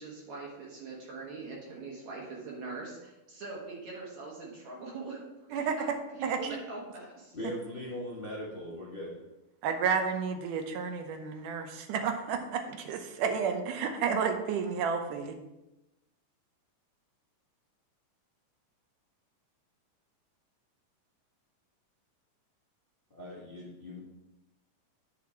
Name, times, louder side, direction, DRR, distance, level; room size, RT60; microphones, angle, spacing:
voice 1, 0.0-5.2 5.5-5.9 6.2-7.4, right 3 dB, 65° right, -3 dB, 2.6 m, -42 dB
voice 2, 6.2-6.6 9.6-15.4, right 6 dB, 80° right, 6 dB, 2.4 m, -31 dB
voice 3, 7.3-9.2 23.1-24.0, left 1 dB, 65° left, -5 dB, 0.5 m, -40 dB
8.6 x 5.7 x 4.5 m, 0.98 s
omnidirectional pair, 3.6 m